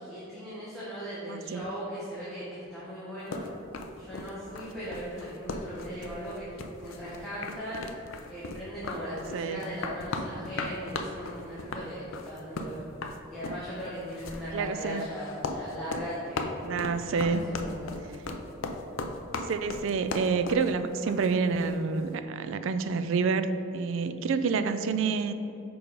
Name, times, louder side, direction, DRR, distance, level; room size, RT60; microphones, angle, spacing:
voice 1, 0.0-3.4 3.9-7.9 8.3-12.8 13.3-16.5 17.1-18.0, equal, ahead, -11 dB, 1.2 m, -38 dB
voice 2, 1.3-1.6 9.3-9.6 14.5-15.0 16.6-17.5 19.5-25.3, right 5 dB, 65° right, 11 dB, 0.3 m, -28 dB
sound 1, 3.3-21.8, left 3 dB, 70° left, 0.5 m, -37 dB
5.1 x 4.6 x 5.1 m, 3.0 s
head